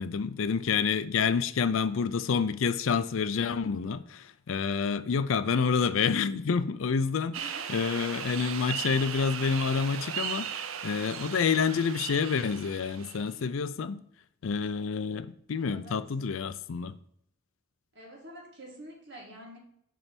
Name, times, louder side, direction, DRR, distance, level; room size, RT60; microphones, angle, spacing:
voice 1, 0.0-14.0 14.4-17.0, left 6 dB, 75° left, 0.4 m, -28 dB
sound 1, 7.3-13.5, right 8 dB, 90° right, 0.5 m, -37 dB
voice 2, 7.4-7.7 15.6-16.1 17.9-19.6, right 1 dB, 55° right, 1.8 m, -47 dB
6.8 x 3.3 x 6.0 m
head